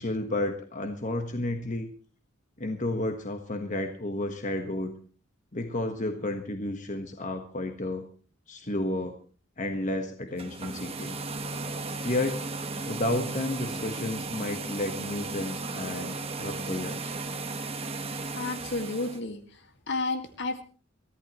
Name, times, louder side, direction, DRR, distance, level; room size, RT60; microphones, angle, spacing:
voice 1, 0.0-1.9 2.6-4.9 5.5-8.1 8.5-9.1 9.6-11.2 12.0-12.4 12.9-17.1, left 1 dB, 40° left, 5 dB, 1.4 m, -31 dB
sound 1, 10.3-19.2, right 3 dB, 30° right, 1.4 m, -35 dB
voice 2, 18.3-20.6, left 3 dB, 60° left, 7 dB, 2.0 m, -32 dB
23.0 x 14.5 x 3.1 m, 0.39 s
head